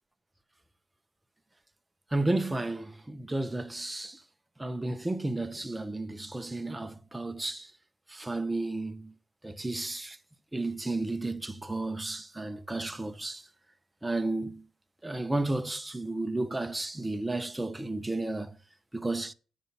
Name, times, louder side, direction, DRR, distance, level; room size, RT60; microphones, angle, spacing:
voice 1, 2.1-4.2 4.6-7.7 8.1-9.1 9.4-10.2 10.5-13.4 14.0-14.6 15.0-18.6 18.9-19.3, right 2 dB, 10° right, 0.8 m, -32 dB
8.4 x 5.3 x 6.8 m
cardioid pair, 90°, 0 cm